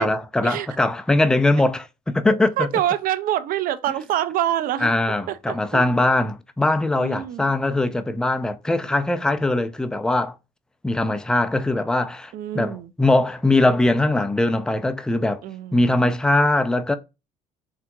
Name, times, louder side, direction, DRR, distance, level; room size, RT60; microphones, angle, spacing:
voice 1, 0.0-2.7 4.8-10.3 10.8-15.4 15.7-17.0, left 2 dB, 5° left, 0.3 m, -21 dB
voice 2, 2.6-4.9 5.3-6.0 7.0-7.5 12.3-12.9 15.4-16.0, right 12 dB, 60° right, 0.4 m, -26 dB
3.7 x 2.7 x 2.2 m
cardioid pair, 100°, 16 cm